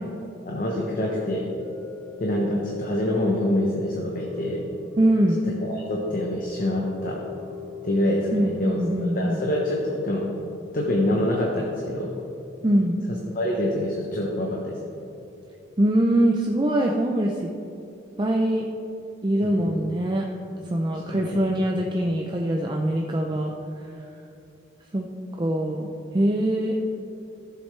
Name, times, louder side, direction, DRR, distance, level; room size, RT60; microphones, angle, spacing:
voice 1, 0.4-1.5 2.2-4.6 5.4-7.2 7.8-10.3 10.7-12.1 13.1-14.8 19.4-19.8 21.1-21.7, left 1 dB, 45° left, -2 dB, 1.0 m, -26 dB
sound 1, 1.6-11.9 12.4-12.5, left 2 dB, 75° right, 2.4 m, -42 dB
voice 2, 5.0-5.4 8.3-9.4 12.6-13.0 15.8-17.5 18.2-18.7 19.2-20.2 20.7-23.5 24.9-25.1 25.4-26.8, right 1 dB, 25° right, 0 dB, 0.5 m, -23 dB
14.5 x 7.3 x 3.3 m, 2.7 s
head